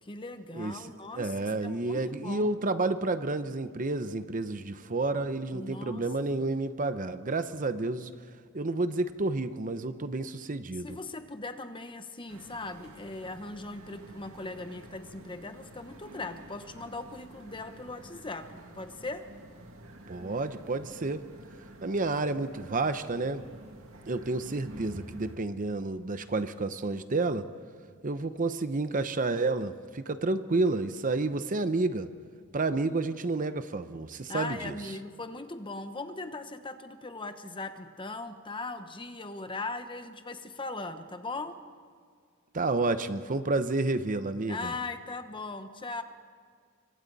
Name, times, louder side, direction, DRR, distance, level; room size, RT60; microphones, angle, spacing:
voice 1, 0.0-2.5 5.5-6.0 6.4-6.5 10.8-19.3 34.3-41.6 44.5-46.0, left 3 dB, 25° left, 8 dB, 1.1 m, -39 dB
voice 2, 0.5-0.9 1.2-8.1 8.5-10.9 20.1-21.2 21.8-23.5 24.1-27.5 28.0-32.1 32.5-34.8 42.5-44.7, right 3 dB, 40° right, 11 dB, 0.8 m, -30 dB
sound 1, 12.3-25.4, right 1 dB, 70° right, 2.4 m, -49 dB
26.5 x 24.5 x 4.1 m, 2.1 s
head